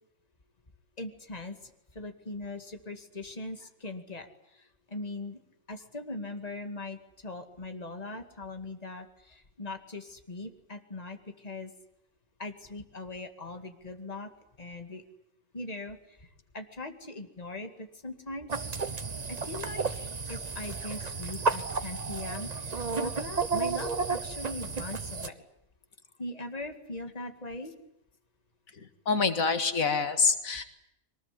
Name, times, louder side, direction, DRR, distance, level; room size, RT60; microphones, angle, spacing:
voice 1, 1.0-1.6 1.9-4.3 4.5-5.4 5.7-11.7 12.4-14.3 14.6-15.0 15.5-16.3 16.5-18.5 19.3-25.4 26.2-27.7, left 2 dB, 30° left, 7 dB, 2.3 m, -40 dB
sound 1, 18.5-25.3, right 4 dB, 30° right, 1.2 m, -32 dB
voice 2, 28.7-30.6, left 4 dB, 90° left, 9 dB, 2.3 m, -26 dB
22.5 x 20.5 x 9.9 m, 0.82 s
omnidirectional pair, 1.4 m